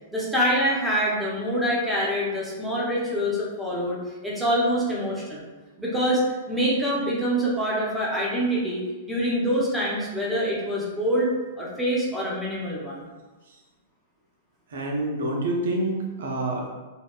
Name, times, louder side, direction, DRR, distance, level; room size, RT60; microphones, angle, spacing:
voice 1, 0.1-4.0 4.2-5.4 5.8-6.2 6.5-11.3 11.6-13.1, equal, ahead, -6 dB, 0.6 m, -25 dB
voice 2, 14.7-16.7, right 1 dB, 60° right, -1 dB, 0.5 m, -27 dB
2.6 x 2.2 x 2.2 m, 1.2 s
figure-of-eight pair, 100°, 0 cm